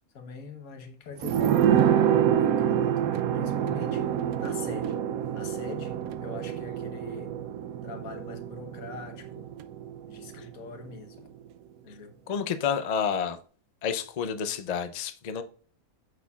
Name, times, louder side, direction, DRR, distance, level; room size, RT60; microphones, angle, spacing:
voice 1, 0.1-4.1 4.4-5.0 5.3-7.3 7.8-9.5 10.0-11.3 11.8-12.1, left 4 dB, 85° left, 1.6 m, -43 dB
sound 1, 1.2-10.5 10.8-10.9, right 9 dB, 85° right, 1.1 m, -27 dB
voice 2, 12.3-13.4 13.8-15.4, left 7 dB, 45° left, 0.5 m, -29 dB
8.2 x 6.6 x 2.4 m
omnidirectional pair, 1.5 m